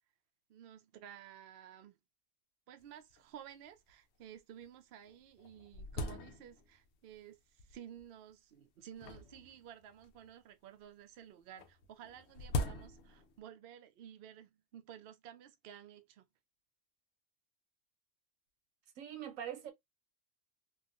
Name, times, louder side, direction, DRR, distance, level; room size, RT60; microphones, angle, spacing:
voice 1, 0.5-2.0 2.7-16.3, right 10 dB, 60° right, 0.7 m, -53 dB
sound 1, 2.8-2.9 3.1-3.2 3.9-4.0 4.6-4.7 5.1-6.9 7.6-8.0 9.0-10.3 11.6-13.4, left 2 dB, 65° left, 0.8 m, -41 dB
voice 2, 19.0-19.7, right 10 dB, 85° right, 1.1 m, -42 dB
2.9 x 2.3 x 2.4 m
omnidirectional pair, 1.3 m